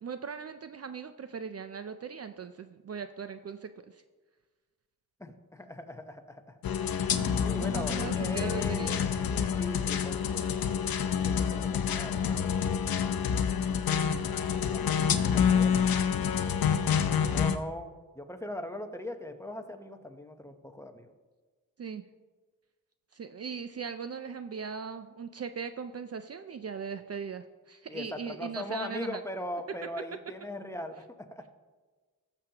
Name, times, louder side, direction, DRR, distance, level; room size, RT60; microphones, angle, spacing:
voice 1, 0.0-4.0 7.2-9.0 21.8-22.0 23.1-29.2, right 6 dB, 45° right, 10 dB, 0.4 m, -39 dB
voice 2, 5.2-6.5 6.9-10.5 11.2-12.8 14.7-15.8 17.2-21.1 27.9-31.5, left 1 dB, 10° left, 6 dB, 0.8 m, -40 dB
sound 1, 6.6-17.6, left 7 dB, 80° left, 0.7 m, -28 dB
19.0 x 7.0 x 2.9 m, 1.4 s
wide cardioid pair, 115°, 35 cm